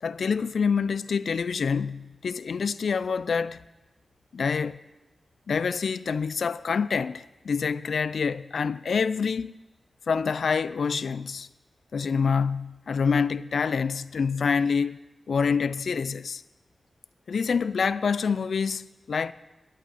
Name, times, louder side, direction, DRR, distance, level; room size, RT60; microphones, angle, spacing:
voice 1, 0.0-3.6 4.3-4.8 5.5-9.6 10.1-11.5 11.9-15.0 15.3-16.4 17.3-19.3, left 5 dB, 75° left, 0.4 m, -26 dB
13.5 x 9.0 x 8.5 m
cardioid pair, 60°, 0 cm